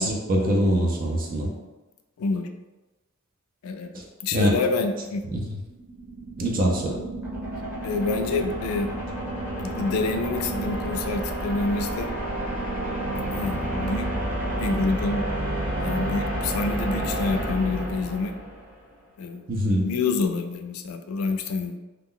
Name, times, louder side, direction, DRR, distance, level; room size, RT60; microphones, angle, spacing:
voice 1, 0.0-1.5 4.3-4.6 5.3-5.4 6.4-7.0 19.5-19.9, equal, 45° right, 0 dB, 0.5 m, -23 dB
voice 2, 2.2-2.5 3.6-3.9 4.2-5.2 7.8-8.9 9.6-12.1 13.3-14.1 14.6-15.2 15.8-18.3 19.2-19.4 19.8-21.8, left 3 dB, 90° left, 7 dB, 0.3 m, -27 dB
sound 1, 5.7-18.8, right 1 dB, 10° right, 0.7 m, -30 dB
2.4 x 2.1 x 3.6 m, 1.1 s
head